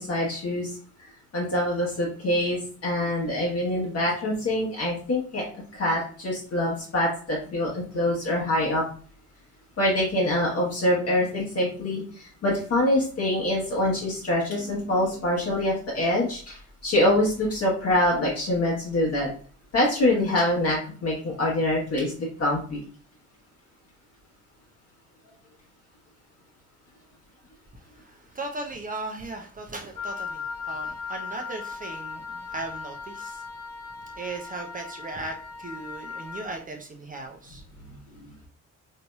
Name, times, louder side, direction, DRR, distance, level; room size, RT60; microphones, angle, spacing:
voice 1, 0.0-5.4 5.7-8.8 9.8-19.3 19.7-22.8 37.8-38.3, left 1 dB, 40° left, -4 dB, 1.2 m, -25 dB
voice 2, 28.4-33.4 34.2-35.3 35.6-37.6, right 2 dB, 20° right, 2 dB, 0.6 m, -37 dB
Wind instrument woodwind instrument, 30.0-36.5, left 5 dB, 10° left, 1.1 m, -37 dB
4.0 x 2.8 x 2.3 m, 0.42 s
figure-of-eight pair, 45°, 38 cm